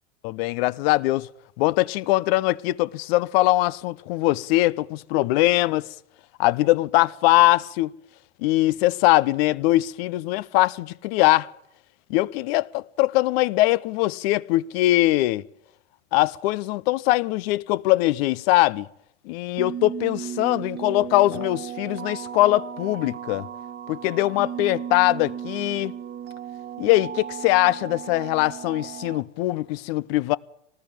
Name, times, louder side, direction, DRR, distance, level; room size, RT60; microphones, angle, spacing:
voice 1, 0.2-1.3 1.6-5.9 6.4-7.9 8.4-11.5 12.1-15.5 16.1-18.9 19.2-23.5 23.9-25.9 26.8-30.4, left 17 dB, 55° left, 0.9 m, -22 dB
sound 1, 19.6-29.2, right 9 dB, 30° right, 1.4 m, -35 dB
24.5 x 19.0 x 9.1 m
hypercardioid pair, 105°, 35 cm